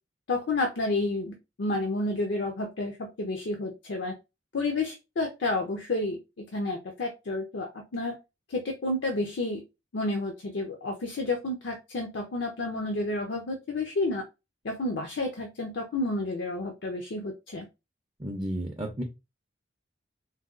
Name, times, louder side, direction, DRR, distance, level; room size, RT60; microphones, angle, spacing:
voice 1, 0.3-4.1 4.5-8.2 8.5-9.6 9.9-14.2 14.6-17.7, left 2 dB, 65° left, 3 dB, 0.5 m, -30 dB
voice 2, 18.2-19.0, right 1 dB, 25° right, 1 dB, 0.5 m, -32 dB
3.9 x 2.2 x 2.4 m, 0.25 s
head